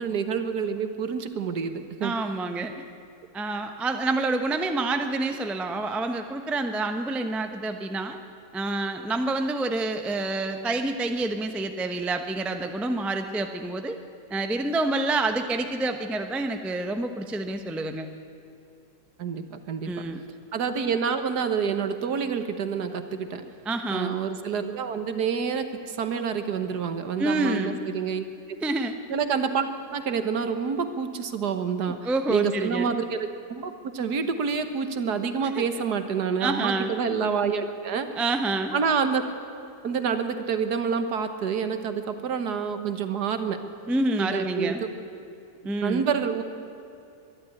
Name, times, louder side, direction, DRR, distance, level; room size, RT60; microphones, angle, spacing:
voice 1, 0.0-2.1 19.2-19.9 20.5-23.4 23.9-28.3 29.1-29.7 29.9-38.1 38.7-39.2 39.8-43.6 44.2-44.7 45.8-46.4, right 6 dB, 65° right, 9 dB, 1.7 m, -28 dB
voice 2, 2.0-2.7 3.3-8.2 8.5-14.0 14.3-18.1 19.9-20.2 23.6-24.2 27.2-27.8 28.6-29.2 31.9-32.9 35.5-35.6 36.4-36.9 38.2-38.7 43.9-44.8 45.6-46.1, right 2 dB, ahead, 6 dB, 0.6 m, -28 dB
22.5 x 12.0 x 9.8 m, 2.5 s
omnidirectional pair, 1.9 m